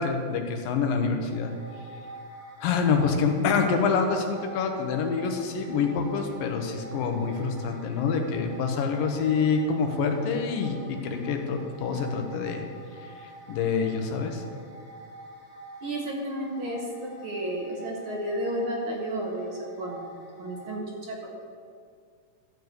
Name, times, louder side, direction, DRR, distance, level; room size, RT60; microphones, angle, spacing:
voice 1, 0.0-1.5 2.6-12.6 13.5-14.4, left 5 dB, 90° left, 4 dB, 2.7 m, -26 dB
sound 1, 1.3-20.8, right 1 dB, 20° right, 2.3 m, -46 dB
voice 2, 15.8-21.4, right 1 dB, 60° right, -1 dB, 1.4 m, -32 dB
13.0 x 4.8 x 7.9 m, 2.1 s
omnidirectional pair, 3.9 m